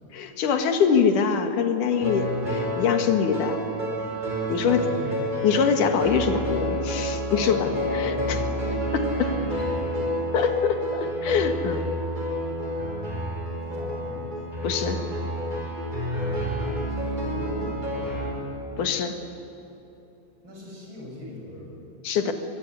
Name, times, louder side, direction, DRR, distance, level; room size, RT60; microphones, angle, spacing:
voice 1, 0.1-3.6 4.5-4.8 5.4-8.4 8.9-9.3 10.3-11.9 14.6-15.0 18.8-19.2 22.0-22.3, left 6 dB, 70° left, 6 dB, 3.1 m, -24 dB
sound 1, 1.9-18.3, equal, 15° right, 5.3 m, -29 dB
voice 2, 4.5-5.3 7.3-10.2 13.6-14.3 16.9-18.4 20.4-21.9, left 1 dB, 35° right, -2 dB, 7.9 m, -40 dB
23.5 x 23.0 x 9.8 m, 3.0 s
omnidirectional pair, 3.8 m